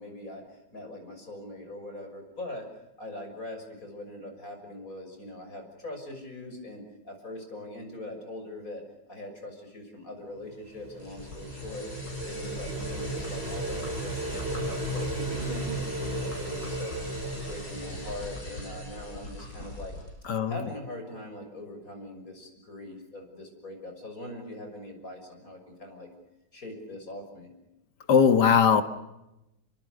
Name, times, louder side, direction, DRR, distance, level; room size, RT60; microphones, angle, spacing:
voice 1, 0.0-2.7 3.0-8.8 9.1-11.9 12.2-16.9 17.5-19.9 20.5-26.1 26.5-27.5, left 1 dB, 50° left, 6.7 m, -42 dB
sound 1, 10.5-19.3, right 1 dB, 35° right, 5.1 m, -35 dB
sound 2, 11.0-20.1, left 1 dB, 90° left, 7.3 m, -42 dB
voice 2, 28.1-28.8, left 7 dB, 70° left, 2.2 m, -19 dB
28.0 x 24.0 x 6.7 m
omnidirectional pair, 1.9 m